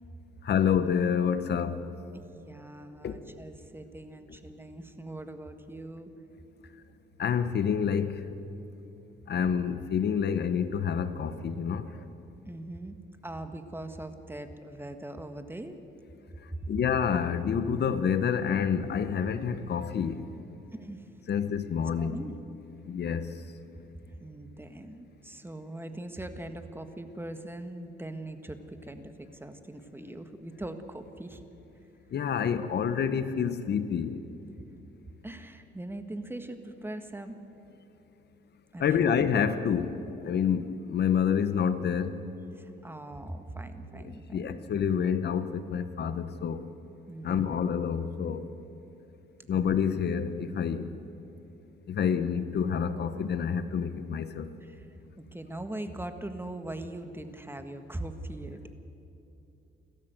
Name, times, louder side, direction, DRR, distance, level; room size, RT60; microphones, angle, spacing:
voice 1, 0.4-1.8 3.0-3.2 7.2-8.2 9.3-12.0 16.7-20.2 21.3-22.2 22.9-23.3 32.1-34.2 38.8-42.2 44.3-46.6 47.2-48.4 49.5-50.9 51.9-54.5, left 7 dB, 55° left, 11 dB, 1.1 m, -28 dB
voice 2, 2.1-6.1 12.5-13.0 13.2-15.8 16.5-16.7 20.7-21.0 22.0-22.4 24.2-31.4 35.2-37.4 38.7-39.1 42.6-44.6 47.1-47.5 49.5-49.6 54.6-54.8 55.2-58.7, right 1 dB, 10° right, 8 dB, 1.6 m, -41 dB
29.0 x 13.0 x 8.0 m, 2.9 s
cardioid pair, 90°, 20 cm